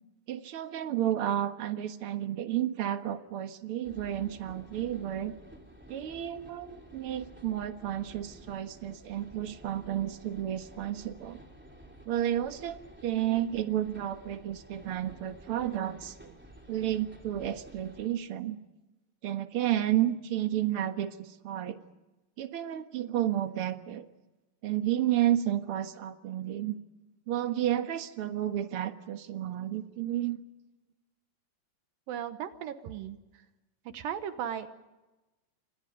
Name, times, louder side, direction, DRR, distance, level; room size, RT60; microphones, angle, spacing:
voice 1, 0.3-5.3 5.9-11.4 12.0-16.4 16.7-18.6 19.2-21.8 22.4-24.0 24.6-26.7 27.3-30.4, right 12 dB, 50° right, 7 dB, 1.8 m, -31 dB
sound 1, 3.8-18.1, right 1 dB, 5° right, 2.7 m, -52 dB
voice 2, 32.1-33.2 33.9-34.7, right 9 dB, 80° right, 9 dB, 2.8 m, -36 dB
30.0 x 26.5 x 5.2 m, 1.1 s
omnidirectional pair, 4.0 m